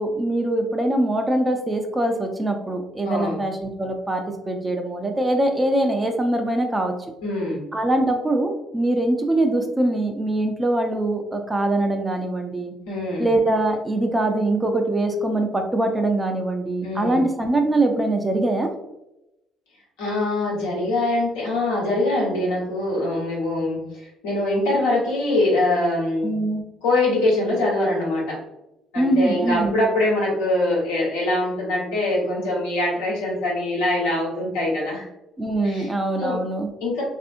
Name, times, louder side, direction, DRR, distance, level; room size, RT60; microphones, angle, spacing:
voice 1, 0.0-6.9 7.7-12.7 13.2-18.7 26.2-26.6 29.0-29.8 35.4-36.7, right 1 dB, 20° right, 4 dB, 0.5 m, -23 dB
voice 2, 3.0-3.4 7.2-7.6 12.9-13.3 16.8-17.2 20.0-26.3 26.8-28.4 28.9-35.1 35.6-36.4 36.8-37.0, left 2 dB, 75° left, -4 dB, 1.1 m, -23 dB
3.3 x 2.6 x 2.5 m, 0.91 s
hypercardioid pair, 50°, 0 cm